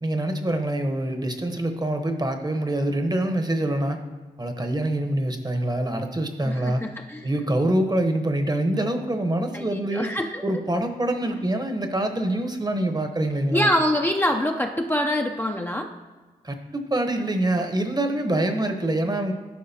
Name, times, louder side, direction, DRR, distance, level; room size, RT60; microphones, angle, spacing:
voice 1, 0.0-4.0 4.4-6.9 7.2-10.1 10.4-13.7 16.4-19.3, right 1 dB, 25° right, 6 dB, 0.9 m, -25 dB
voice 2, 6.4-7.3 9.5-10.4 13.5-15.9, left 1 dB, 15° left, 3 dB, 0.5 m, -25 dB
11.5 x 4.9 x 2.7 m, 1.3 s
cardioid pair, 50°, 16 cm